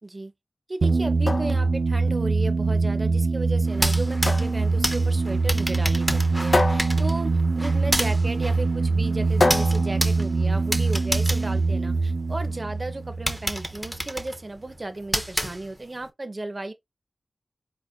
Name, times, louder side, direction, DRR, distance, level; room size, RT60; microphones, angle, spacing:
voice 1, 0.0-0.3 0.7-16.7, right 2 dB, 35° right, 0.9 m, -34 dB
sound 1, 0.8-14.0, right 3 dB, 65° right, 0.4 m, -24 dB
sound 2, 1.0-11.0, left 2 dB, 50° left, 0.7 m, -30 dB
sound 3, 3.7-12.4 12.8-12.9 13.3-16.0, equal, ahead, 0.9 m, -31 dB
4.5 x 3.7 x 2.7 m
wide cardioid pair, 80°, 0 cm